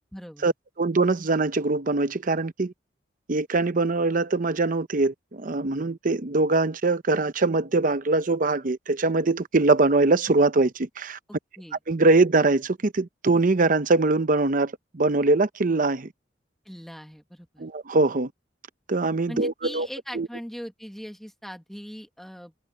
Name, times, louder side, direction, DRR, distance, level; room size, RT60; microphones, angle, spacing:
voice 1, 0.1-0.5 11.3-11.8 16.7-17.7 19.3-22.5, equal, ahead, 1.9 m, -40 dB
voice 2, 0.8-2.7 3.3-11.2 11.9-16.1 17.6-18.3 18.9-19.9 20.1-20.3, right 3 dB, 50° right, 0.8 m, -22 dB
head